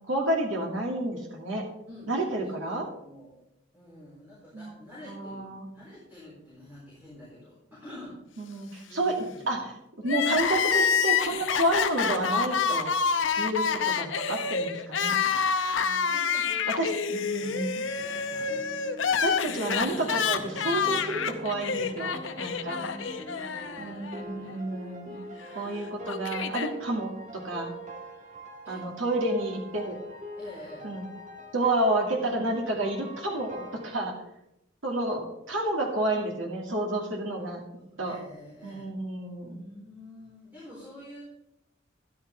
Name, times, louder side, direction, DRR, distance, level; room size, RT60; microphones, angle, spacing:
voice 1, 0.1-1.6 2.1-2.9 4.5-4.8 5.1-5.7 8.4-9.1 9.5-12.9 13.4-15.3 16.8-17.8 19.2-22.8 23.8-25.3 25.5-27.7 28.7-30.0 30.8-31.0 31.5-34.1 34.8-35.2 35.5-37.6 38.0-38.2 38.6-39.7, right 1 dB, 90° right, 0 dB, 2.1 m, -30 dB
voice 2, 1.9-3.3 3.7-5.5 5.7-8.5 8.9-9.7 15.7-18.6 22.5-24.6 28.6-28.8 29.1-29.2 30.3-30.9 36.9-38.9 39.6-41.2, left 1 dB, 10° right, -8 dB, 4.2 m, -48 dB
Crying sobbing, 10.0-24.2 24.5-24.6 25.6-26.7, left 6 dB, 75° left, 0.8 m, -28 dB
sound 1, 18.0-34.0, right 1 dB, 40° right, 1.5 m, -44 dB
12.5 x 11.0 x 3.4 m, 0.83 s
head